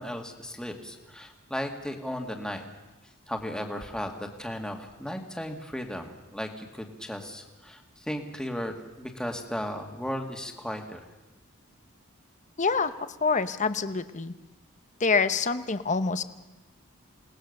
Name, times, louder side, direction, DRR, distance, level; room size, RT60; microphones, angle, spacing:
voice 1, 0.0-2.7 3.3-11.1, equal, 5° left, 4 dB, 2.0 m, -35 dB
voice 2, 12.6-12.9 13.2-14.3 15.0-16.2, left 4 dB, 35° left, 12 dB, 0.9 m, -26 dB
28.5 x 19.0 x 6.6 m, 1.1 s
head